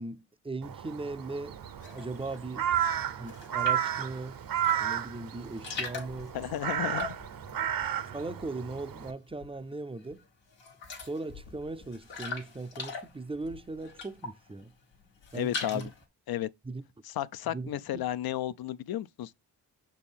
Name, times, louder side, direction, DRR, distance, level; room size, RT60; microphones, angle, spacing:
voice 1, 0.0-1.6 1.8-2.7 3.2-6.4 7.6-7.7 8.1-10.2 11.0-14.7 15.3-15.9 16.6-16.8 17.5-18.0, right 3 dB, 15° right, 0.5 m, -39 dB
Crow, 0.6-9.1, right 10 dB, 50° right, 0.8 m, -33 dB
sound 1, 1.8-2.4 2.8-4.0 4.5-5.1 5.3-8.8 9.0-9.7 10.1-10.2 10.5-14.5 14.9-16.0, left 4 dB, 85° left, 1.4 m, -41 dB
voice 2, 6.3-7.2 15.3-15.9 16.3-16.5 17.1-19.3, left 12 dB, 60° left, 0.5 m, -33 dB
6.0 x 4.4 x 3.5 m
supercardioid pair, 55°, 43 cm